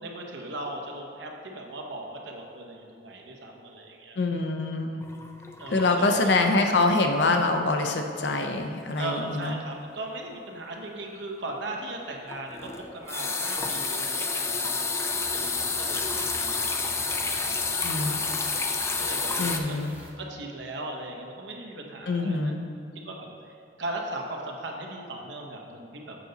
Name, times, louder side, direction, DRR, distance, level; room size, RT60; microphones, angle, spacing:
voice 1, 0.0-4.2 5.6-6.1 9.0-14.7 15.0-16.9 17.3-18.4 19.0-19.8 20.2-22.4 23.0-26.2, right 2 dB, 80° right, 1 dB, 0.9 m, -38 dB
voice 2, 4.2-5.0 5.7-9.6 17.8-18.2 19.4-20.0 22.1-22.6, left 3 dB, 65° left, 4 dB, 0.6 m, -25 dB
sound 1, 5.0-6.6 6.9-7.2 7.6-7.7 12.3-19.6, left 4 dB, 15° left, 0.4 m, -29 dB
sound 2, 15.1-20.1, right 1 dB, 10° right, 0.8 m, -47 dB
7.5 x 5.2 x 3.9 m, 2.5 s
head